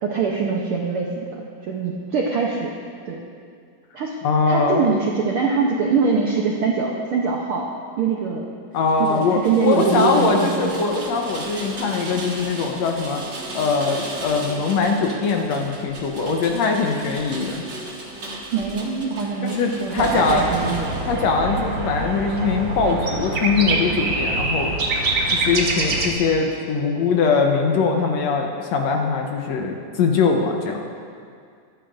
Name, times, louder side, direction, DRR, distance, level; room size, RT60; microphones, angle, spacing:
voice 1, 0.0-2.7 3.1-3.2 3.9-4.2 4.5-7.7 8.0-8.4 9.0-10.8 18.5-20.9, right 5 dB, 75° right, -1 dB, 1.2 m, -23 dB
voice 2, 4.2-4.8 8.7-13.2 13.5-17.6 19.4-20.4 21.1-30.8, left 4 dB, 70° left, 2 dB, 1.9 m, -22 dB
Rain, 8.8-21.2, right 1 dB, 45° right, 1.9 m, -36 dB
sound 1, 20.0-26.1, right 3 dB, 60° right, 0.9 m, -25 dB
22.5 x 10.0 x 2.6 m, 2.2 s
omnidirectional pair, 3.5 m